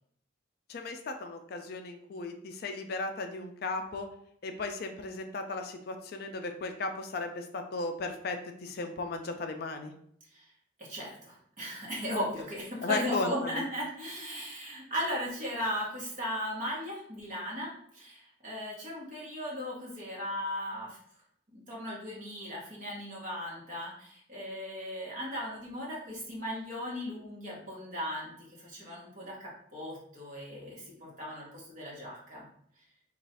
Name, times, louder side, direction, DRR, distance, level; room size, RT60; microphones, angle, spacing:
voice 1, 0.7-4.1 4.4-8.4 8.6-9.9 12.8-13.3, left 3 dB, 50° left, 5 dB, 0.3 m, -35 dB
voice 2, 10.8-21.0 21.5-32.5, equal, 40° right, -4 dB, 1.2 m, -37 dB
3.1 x 2.4 x 4.1 m, 0.67 s
head